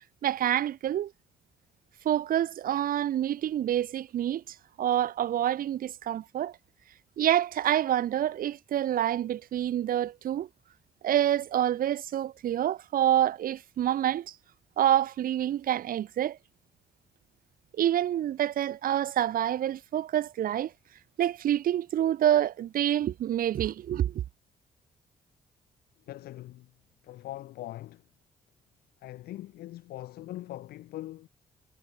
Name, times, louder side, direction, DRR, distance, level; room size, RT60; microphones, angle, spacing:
voice 1, 0.2-1.1 2.0-4.4 4.8-6.6 7.2-10.5 11.0-14.3 14.8-16.4 17.8-20.7 21.2-24.2, right 11 dB, 65° right, 0.6 m, -27 dB
voice 2, 26.1-26.7 27.0-28.0 29.0-31.3, left 15 dB, 80° left, 0.8 m, -41 dB
supercardioid pair, 55°, 16 cm